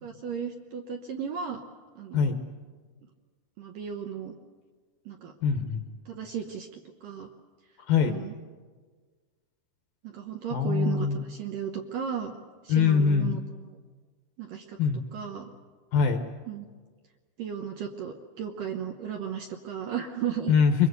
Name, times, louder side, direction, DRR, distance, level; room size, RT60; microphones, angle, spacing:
voice 1, 0.0-1.6 2.0-2.4 3.6-4.3 5.1-5.3 6.1-7.3 8.1-8.3 10.0-12.3 12.6-13.7 14.4-14.8 15.1-15.5 16.5-16.7 17.4-20.5, right 8 dB, 70° right, 3 dB, 2.2 m, -35 dB
voice 2, 5.4-5.8 7.9-8.2 10.5-11.2 12.7-13.4 14.8-15.0 15.9-16.2 20.5-20.9, left 6 dB, 70° left, 6 dB, 2.3 m, -23 dB
25.5 x 22.5 x 8.1 m, 1.5 s
omnidirectional pair, 5.1 m